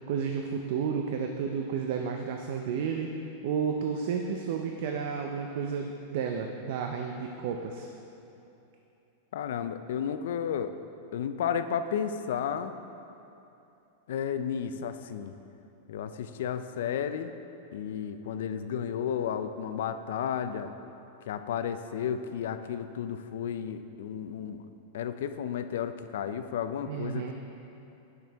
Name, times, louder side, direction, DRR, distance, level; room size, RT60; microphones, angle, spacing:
voice 1, 0.0-3.1 3.4-7.9 26.9-27.3, right 6 dB, 55° right, 3 dB, 0.4 m, -32 dB
voice 2, 9.3-10.7 11.1-12.7 14.1-15.3 15.9-17.3 17.7-20.7 21.3-24.6 24.9-27.3, left 8 dB, 75° left, 10 dB, 0.4 m, -32 dB
9.0 x 6.0 x 3.4 m, 2.9 s
supercardioid pair, 160°, 0 cm